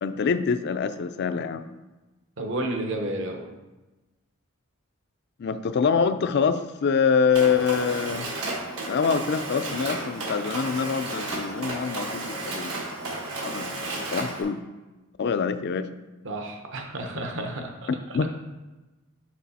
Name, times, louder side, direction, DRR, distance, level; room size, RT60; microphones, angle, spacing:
voice 1, 0.0-1.6 5.4-8.3 8.9-12.9 13.4-13.7 14.1-14.6 15.2-15.9 17.9-18.3, left 6 dB, 50° left, 11 dB, 0.4 m, -25 dB
voice 2, 2.4-3.4 16.2-18.2, right 1 dB, 55° right, 3 dB, 0.9 m, -31 dB
Mechanisms, 7.3-14.4, right 2 dB, 75° right, 1.4 m, -33 dB
6.1 x 4.9 x 4.1 m, 1.1 s
head